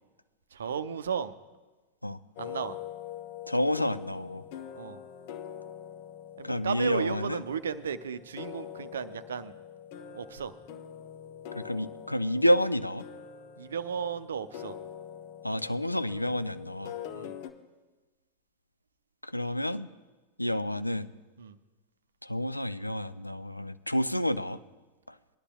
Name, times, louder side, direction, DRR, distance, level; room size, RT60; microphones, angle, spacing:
voice 1, 0.5-1.3 2.4-2.8 4.7-5.0 6.4-9.5 10.1-10.5 13.6-14.8 17.1-17.4 21.4-21.6, right 7 dB, 65° right, 12 dB, 0.5 m, -34 dB
sound 1, 2.4-17.5, left 9 dB, 50° left, 0.8 m, -44 dB
voice 2, 3.5-4.4 6.4-7.4 11.5-13.0 15.4-16.9 19.2-19.9 20.4-21.1 22.2-24.6, equal, 85° left, 13 dB, 0.4 m, -29 dB
21.0 x 11.5 x 2.3 m, 1.2 s
figure-of-eight pair, 90°, 0 cm